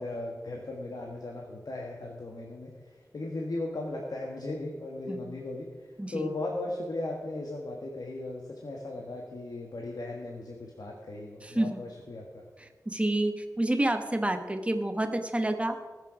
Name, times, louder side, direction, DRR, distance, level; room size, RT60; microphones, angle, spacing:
voice 1, 0.0-12.4, left 2 dB, 75° left, 0 dB, 1.5 m, -37 dB
voice 2, 12.6-15.8, right 1 dB, 20° right, 6 dB, 1.2 m, -29 dB
20.0 x 6.8 x 4.9 m, 1.4 s
wide cardioid pair, 75°, 7 cm